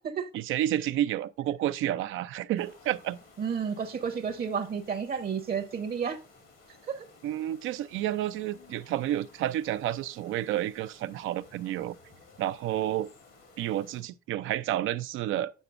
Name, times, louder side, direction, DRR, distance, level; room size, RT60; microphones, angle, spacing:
voice 1, 0.3-3.2 7.2-12.0 12.4-13.1 13.6-15.5, right 12 dB, 85° right, 0.4 m, -30 dB
sound 1, 2.6-14.0, left 3 dB, 85° left, 2.5 m, -56 dB
voice 2, 3.4-6.2 6.9-7.1, right 6 dB, 50° right, 0.8 m, -31 dB
8.1 x 5.9 x 2.4 m
cardioid pair, 90°, 20 cm